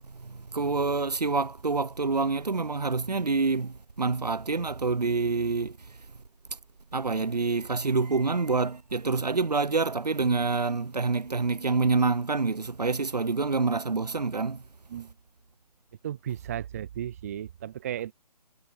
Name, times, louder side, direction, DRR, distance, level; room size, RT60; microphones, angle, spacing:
voice 1, 0.1-6.0 6.9-14.6, right 4 dB, 90° right, 0.7 m, -27 dB
voice 2, 16.0-18.1, right 10 dB, 25° right, 0.4 m, -35 dB
figure-of-eight pair, 140°, 20 cm